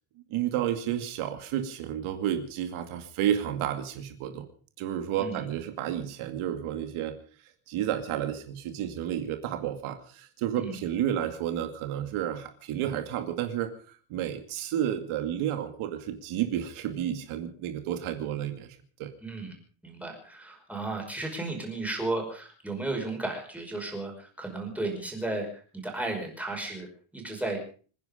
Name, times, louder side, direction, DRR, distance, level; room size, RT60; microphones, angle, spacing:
voice 1, 0.3-4.5 4.8-7.2 7.7-19.1, right 10 dB, 75° right, 7 dB, 2.5 m, -31 dB
voice 2, 19.2-19.5 19.8-26.9 27.1-27.6, right 2 dB, 5° right, 1 dB, 5.3 m, -34 dB
27.0 x 10.5 x 5.2 m, 0.41 s
cardioid pair, 160°, 50 cm